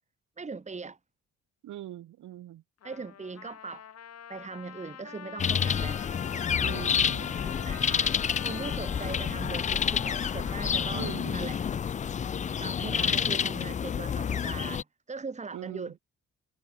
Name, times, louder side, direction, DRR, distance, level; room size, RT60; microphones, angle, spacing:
voice 1, 0.4-1.0 2.8-3.8 4.3-6.0 7.3-11.6 12.6-15.9, right 4 dB, 25° right, 1.8 m, -40 dB
voice 2, 1.6-2.6 6.6-7.8 10.9-11.4 15.5-15.9, right 13 dB, 75° right, 3.2 m, -42 dB
Trumpet, 2.8-11.2, left 9 dB, 55° left, 2.9 m, -46 dB
sound 1, 5.4-14.8, left 7 dB, 25° left, 0.3 m, -29 dB
cardioid pair, 90°, 30 cm